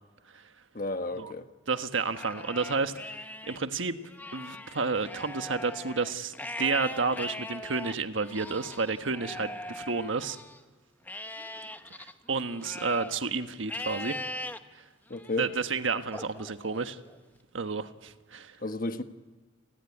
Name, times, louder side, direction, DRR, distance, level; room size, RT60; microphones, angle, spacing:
voice 1, 0.7-1.4 15.1-15.5 18.6-19.0, left 2 dB, 45° left, 1.3 m, -32 dB
voice 2, 1.7-4.0 4.3-10.4 11.9-14.2 15.4-17.0 17.5-18.6, right 4 dB, 85° right, 1.4 m, -31 dB
Livestock farm animals working animals, 2.0-3.6 4.0-10.6 11.1-13.2 13.7-14.6 15.1-15.6 16.1-17.2, left 1 dB, 10° left, 1.0 m, -40 dB
30.0 x 19.5 x 9.8 m
head